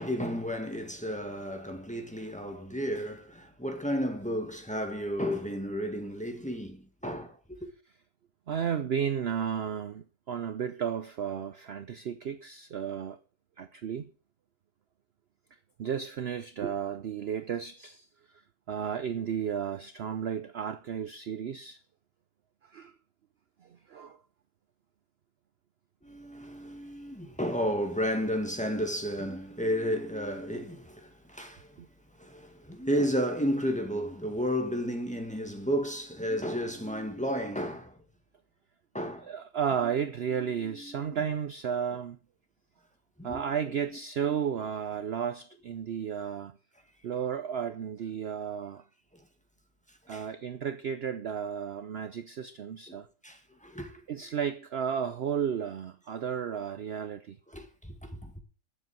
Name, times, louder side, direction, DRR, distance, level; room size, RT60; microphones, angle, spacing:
voice 1, 0.0-7.7 26.0-31.8 32.2-38.0 38.9-39.3 40.6-41.2 43.2-44.0 44.3-44.4 50.1-50.3 52.9-53.0 53.2-54.0 57.5-58.4, equal, 5° left, 1.7 m, -33 dB
voice 2, 8.5-13.2 13.6-14.1 15.8-18.1 18.7-21.8 22.7-22.9 23.6-24.2 31.8-31.9 39.3-42.2 43.2-46.6 47.0-48.8 50.1-53.1 54.1-57.4, right 8 dB, 55° right, 0.8 m, -33 dB
11.0 x 7.4 x 7.4 m
omnidirectional pair, 1.5 m